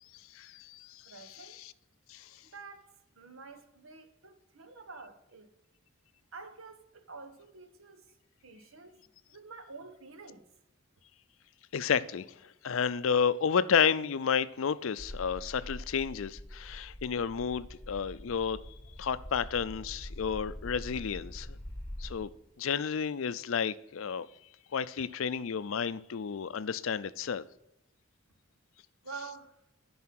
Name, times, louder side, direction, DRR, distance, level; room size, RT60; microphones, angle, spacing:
voice 1, 0.3-1.7 2.1-2.3 11.7-12.3 12.6-18.6 19.0-21.6 22.0-22.3 22.6-24.3 24.7-27.4, left 7 dB, 75° left, 0.5 m, -31 dB
voice 2, 1.0-1.6 2.4-5.5 6.3-8.1 8.4-10.4 29.0-29.6, right 4 dB, 80° right, 1.2 m, -48 dB
sound 1, 15.0-22.2, left 1 dB, 10° left, 1.3 m, -44 dB
9.4 x 5.6 x 6.0 m
head